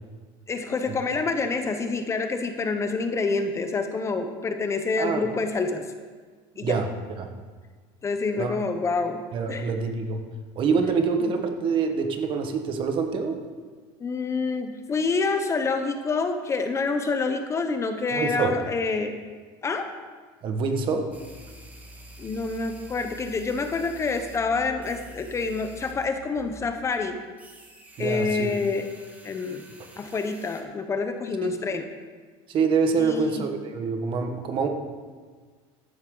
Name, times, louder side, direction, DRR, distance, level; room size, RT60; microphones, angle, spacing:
voice 1, 0.5-5.9 6.6-6.8 8.0-9.7 11.2-11.3 14.0-19.1 19.6-19.9 22.2-27.2 28.0-28.9 29.2-29.6 30.0-31.9 33.0-33.5, left 4 dB, 25° left, 7 dB, 0.8 m, -27 dB
voice 2, 5.0-5.3 6.6-6.9 7.2-7.3 8.4-8.6 9.3-10.2 10.5-13.4 18.1-18.5 20.4-21.1 28.0-28.5 31.4-31.6 32.5-34.7, right 5 dB, 45° right, 5 dB, 1.4 m, -25 dB
sound 1, 21.1-26.1 26.4-26.7 27.4-30.6, right 1 dB, 15° right, 1.6 m, -47 dB
14.0 x 11.0 x 3.9 m, 1.5 s
cardioid pair, 135°, 12 cm